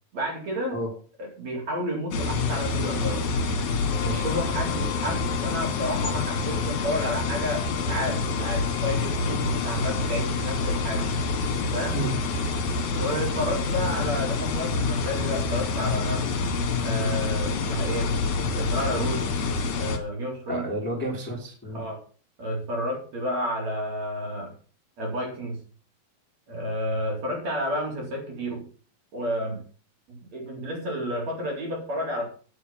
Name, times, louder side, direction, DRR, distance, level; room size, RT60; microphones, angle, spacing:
voice 1, 0.1-0.8 1.2-3.2 4.2-11.1 11.7-12.0 12.9-16.3 16.8-18.1 18.5-19.2 19.7-20.7 21.7-22.0 22.4-24.5 25.0-25.6 26.5-28.7 29.1-29.6 30.1-32.3, equal, 45° right, -1 dB, 4.8 m, -31 dB
sound 1, 2.1-20.0, left 4 dB, 55° left, 3.0 m, -27 dB
sound 2, 3.9-14.7, left 16 dB, 80° left, 1.8 m, -40 dB
voice 2, 20.5-21.8 26.5-26.7, right 1 dB, 5° left, -1 dB, 2.7 m, -31 dB
9.9 x 6.8 x 7.5 m, 0.41 s
omnidirectional pair, 4.3 m